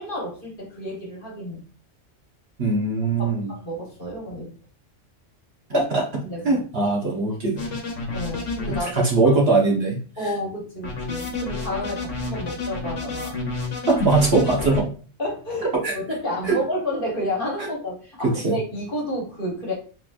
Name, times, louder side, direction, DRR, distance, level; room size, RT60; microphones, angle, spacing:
voice 1, 0.0-1.6 3.2-4.6 5.7-5.8 6.2-6.6 8.1-9.4 10.2-13.4 15.2-19.7, left 1 dB, 50° left, -2 dB, 1.4 m, -30 dB
voice 2, 2.6-3.5 5.7-6.0 6.4-7.6 8.9-10.0 13.9-14.9 15.8-15.9 16.4-16.5 18.4-18.6, right 3 dB, 60° right, -1 dB, 1.2 m, -20 dB
sound 1, 7.6-8.8 10.8-14.8, left 3 dB, 80° left, 1.2 m, -30 dB
4.1 x 3.0 x 2.4 m, 0.39 s
omnidirectional pair, 1.2 m